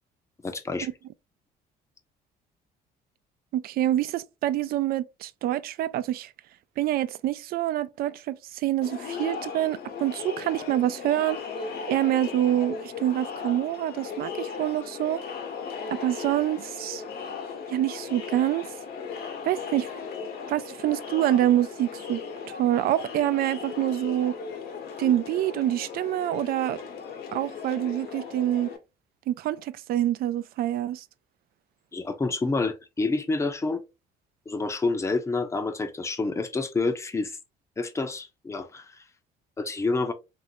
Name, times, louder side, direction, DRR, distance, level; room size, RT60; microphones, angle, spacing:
voice 1, 0.4-0.9 31.9-33.8 34.5-37.4 37.8-39.0 39.6-40.1, left 3 dB, 15° left, 0.6 m, -28 dB
voice 2, 3.5-6.3 6.8-11.4 11.9-15.2 15.9-17.0 17.7-18.7 19.4-19.9 20.5-22.2 22.5-24.3 25.0-26.8 27.3-28.7 29.3-31.0, right 13 dB, 65° right, 0.4 m, -26 dB
Crowd, 8.8-28.8, left 6 dB, 65° left, 0.9 m, -37 dB
3.1 x 2.6 x 2.8 m
cardioid pair, 110°, 17 cm